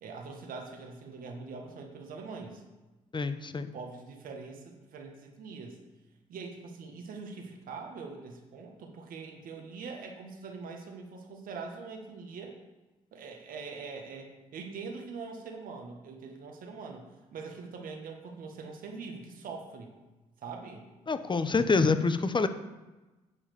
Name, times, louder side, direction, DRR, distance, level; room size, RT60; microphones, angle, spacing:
voice 1, 0.0-2.6 3.6-5.8 6.3-12.6 13.1-17.0 17.3-19.9 20.4-20.9, right 4 dB, 70° right, 3 dB, 1.8 m, -43 dB
voice 2, 3.1-3.7 21.1-22.5, left 4 dB, 30° left, 11 dB, 0.9 m, -26 dB
9.9 x 4.9 x 6.7 m, 1.1 s
hypercardioid pair, 50°, 15 cm